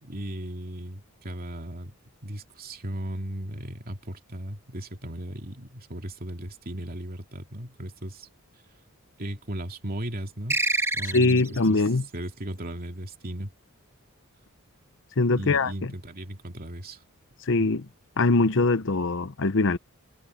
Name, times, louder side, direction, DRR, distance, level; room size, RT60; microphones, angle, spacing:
voice 1, 0.0-2.0 2.2-8.3 9.2-10.6 10.9-11.8 12.1-13.5 15.4-17.0 17.6-17.7, right 1 dB, 45° right, 2.6 m, -36 dB
sound 1, 10.5-11.7, right 2 dB, 10° right, 2.1 m, -27 dB
voice 2, 11.1-12.0 15.2-15.7 17.5-17.8 18.2-19.8, left 3 dB, 60° left, 0.9 m, -22 dB
head